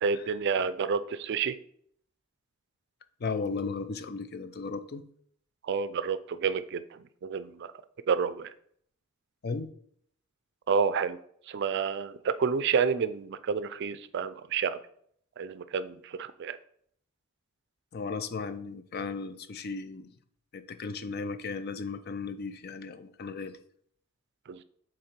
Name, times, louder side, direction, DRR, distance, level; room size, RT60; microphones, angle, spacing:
voice 1, 0.0-1.6 5.6-7.7 8.1-8.5 10.7-11.2 11.5-14.8 15.4-16.6 24.5-24.6, right 6 dB, 55° right, 13 dB, 0.4 m, -29 dB
voice 2, 3.2-5.1 9.4-9.7 17.9-20.1 20.5-23.6, left 4 dB, 50° left, 11 dB, 0.5 m, -35 dB
6.4 x 3.9 x 4.4 m, 0.65 s
head